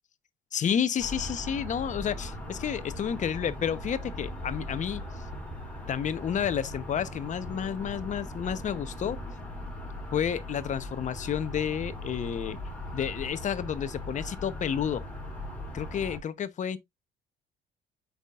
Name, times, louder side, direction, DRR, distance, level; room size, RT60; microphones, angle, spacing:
voice 1, 0.5-5.0 5.9-9.2 10.1-12.6 12.9-15.0 15.7-16.8, left 8 dB, 45° left, 1.0 m, -30 dB
sound 1, 1.0-16.2, left 1 dB, 5° left, 4.7 m, -39 dB
8.0 x 5.9 x 2.5 m
cardioid pair, 110°, 17 cm